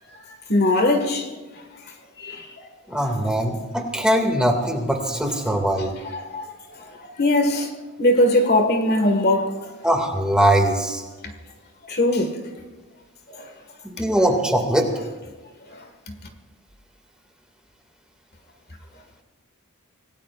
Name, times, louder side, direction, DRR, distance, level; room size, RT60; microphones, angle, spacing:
voice 1, 0.5-1.3 2.2-2.4 6.0-6.5 7.0-7.7 8.0-9.7 11.9-12.4 13.3-13.5, left 1 dB, 45° left, 1.7 m, -20 dB
voice 2, 2.9-5.9 9.8-11.0 13.8-14.9, right 1 dB, 5° right, 2.2 m, -21 dB
26.5 x 18.5 x 2.5 m
head